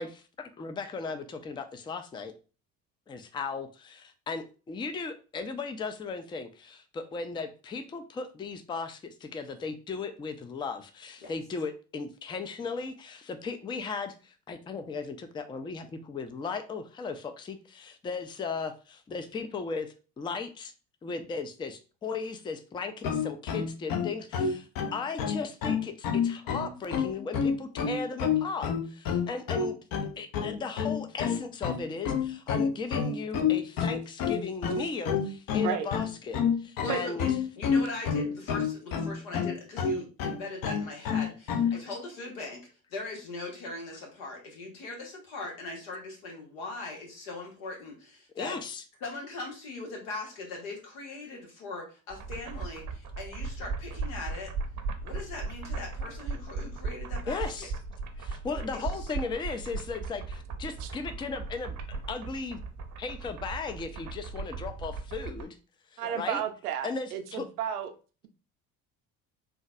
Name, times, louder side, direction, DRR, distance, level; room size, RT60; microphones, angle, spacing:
voice 1, 0.0-2.3 3.1-20.7 21.0-29.8 30.2-37.3 48.4-48.8 57.3-57.7 58.2-62.6 63.0-65.6 65.9-66.4 66.8-67.4, left 4 dB, 10° left, 9 dB, 0.3 m, -36 dB
sound 1, 23.0-41.8, left 6 dB, 50° left, 0.7 m, -29 dB
voice 2, 36.8-37.3 37.6-48.6 49.0-54.5 55.0-57.7 58.5-58.8 66.0-66.2, left 2 dB, 75° left, 1 dB, 1.2 m, -40 dB
sound 2, 52.1-65.4, right 4 dB, 40° right, 0.6 m, -37 dB
voice 3, 66.0-67.9, right 9 dB, 90° right, 6 dB, 0.6 m, -32 dB
3.8 x 2.2 x 2.4 m, 0.34 s
hypercardioid pair, 60°, 44 cm